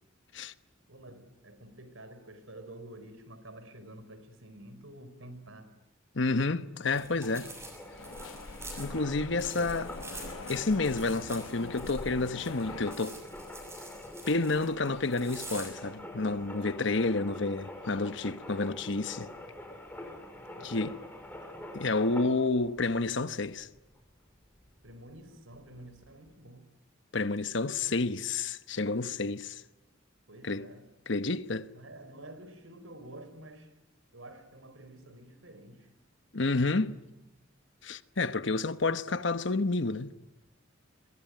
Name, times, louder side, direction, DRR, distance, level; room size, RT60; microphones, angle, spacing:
voice 1, 0.9-5.7 20.6-21.0 24.8-26.7 30.3-30.9 31.7-33.7 34.1-35.9, right 1 dB, 75° right, 4.6 m, -49 dB
voice 2, 6.1-7.5 8.8-9.9 10.5-13.2 14.3-19.3 20.6-21.0 21.7-23.7 27.1-29.6 30.4-30.7 31.1-31.7 36.3-37.0 37.8-40.1, left 3 dB, 60° left, 1.1 m, -30 dB
sound 1, 6.9-26.3, left 1 dB, 10° left, 5.2 m, -46 dB
sound 2, 6.9-15.7, right 2 dB, 15° right, 6.7 m, -47 dB
sound 3, 8.0-13.0, left 3 dB, 85° left, 0.9 m, -44 dB
27.5 x 23.5 x 9.3 m
head